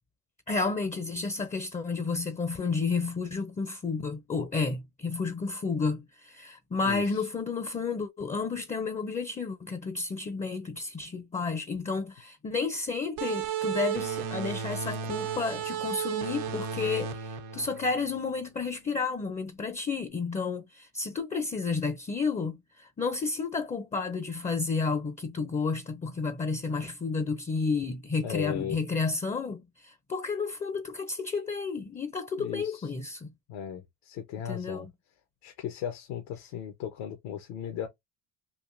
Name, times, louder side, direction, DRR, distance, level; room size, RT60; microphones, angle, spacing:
voice 1, 0.5-33.3 34.5-34.9, left 4 dB, 15° left, 0.5 m, -31 dB
voice 2, 6.8-7.3 28.2-28.8 32.4-32.9 33.5-34.9 35.4-37.9, left 9 dB, 80° left, 1.0 m, -37 dB
sound 1, 13.2-18.4, right 7 dB, 90° right, 1.0 m, -34 dB
3.8 x 2.5 x 2.5 m
supercardioid pair, 90°, 49 cm